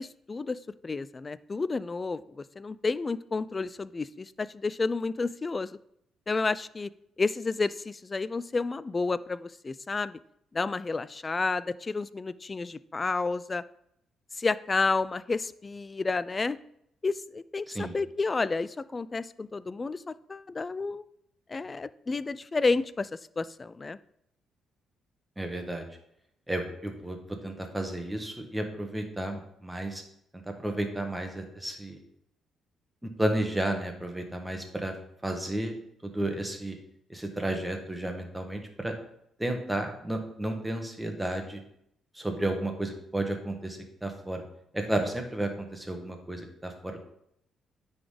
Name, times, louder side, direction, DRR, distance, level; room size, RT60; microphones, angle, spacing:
voice 1, 0.0-5.7 6.3-6.9 7.2-10.2 10.5-13.6 14.4-16.6 17.0-21.0 21.5-24.0, left 3 dB, 30° left, 17 dB, 0.3 m, -31 dB
voice 2, 25.4-25.8 26.5-30.0 30.3-32.0 33.0-34.9 35.2-35.8 36.0-36.8 37.1-38.9 39.4-41.6 42.1-44.4 44.7-47.0, right 1 dB, 10° right, 4 dB, 1.5 m, -32 dB
9.4 x 4.0 x 5.0 m, 0.75 s
cardioid pair, 90°, 0 cm